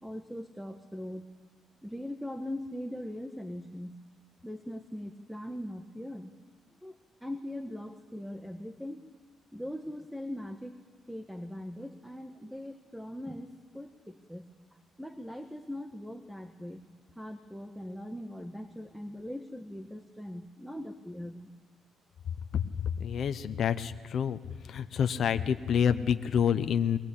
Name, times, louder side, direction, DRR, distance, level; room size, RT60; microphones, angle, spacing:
voice 1, 0.0-1.3 1.8-4.0 4.4-6.3 6.8-9.1 9.5-10.8 11.1-14.5 15.0-16.8 17.1-21.5, left 1 dB, ahead, 7 dB, 1.5 m, -41 dB
voice 2, 23.0-24.4 24.7-27.0, left 8 dB, 60° left, 9 dB, 1.0 m, -28 dB
22.5 x 21.0 x 8.6 m, 1.3 s
cardioid pair, 90°, 0 cm